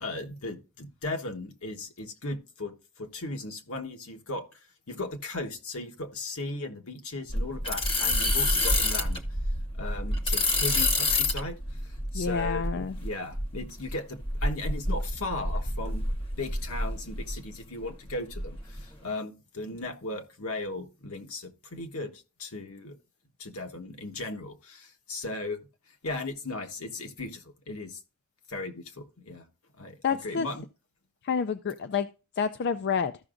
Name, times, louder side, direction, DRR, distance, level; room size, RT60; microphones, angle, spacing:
voice 1, 0.0-4.4 4.9-9.2 9.7-16.1 16.4-22.9 23.4-25.6 26.0-28.0 28.5-29.4 29.8-30.6, left 2 dB, 75° left, 1.3 m, -37 dB
sound 1, 7.3-17.5 17.8-18.8, left 2 dB, 25° left, 0.9 m, -28 dB
voice 2, 12.1-13.0 30.0-30.5 31.2-32.1 32.4-33.1, left 6 dB, 50° left, 0.4 m, -28 dB
14.0 x 5.9 x 2.5 m
head